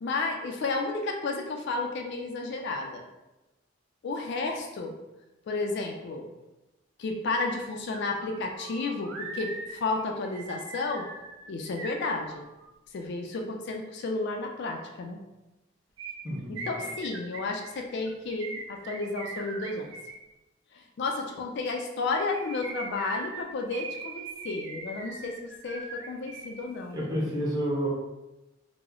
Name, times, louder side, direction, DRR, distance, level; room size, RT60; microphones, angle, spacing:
voice 1, 0.0-3.0 4.0-4.9 5.5-6.3 7.0-11.1 11.5-12.4 12.9-15.2 16.5-19.9 20.7-27.1, left 3 dB, 55° left, 3 dB, 0.4 m, -32 dB
sound 1, 7.5-7.6 7.9-12.7 16.0-20.2 22.0-26.6 26.9-27.0, right 3 dB, 65° right, 0.5 m, -41 dB
voice 2, 16.2-16.7 26.9-27.9, equal, 20° right, -6 dB, 0.8 m, -29 dB
2.9 x 2.0 x 3.7 m, 1.0 s
head